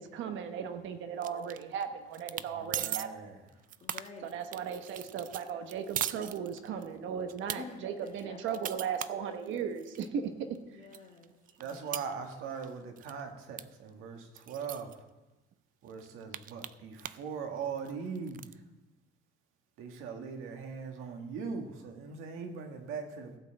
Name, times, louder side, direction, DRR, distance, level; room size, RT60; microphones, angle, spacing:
voice 1, 0.0-3.1 4.2-10.3, right 7 dB, 70° right, 8 dB, 1.1 m, -37 dB
sound 1, 1.2-1.8 2.1-2.5 2.7-3.1 3.5-6.9 7.3-7.6 8.1-10.1 10.5-10.6 10.9-12.7 13.0-13.2 13.6-13.7 13.9-14.0 14.4-14.9 15.5-15.6 15.9-17.3 17.6-18.5, right 11 dB, 40° right, 0.4 m, -39 dB
voice 2, 2.5-3.4 11.6-14.9 15.8-18.4 19.8-23.4, right 6 dB, 90° right, 4 dB, 1.8 m, -40 dB
voice 3, 3.8-4.3 7.6-8.4 10.7-11.3 11.6-12.0, left 5 dB, 35° left, 0 dB, 2.2 m, -49 dB
16.0 x 5.6 x 7.7 m, 1.1 s
cardioid pair, 160°, 21 cm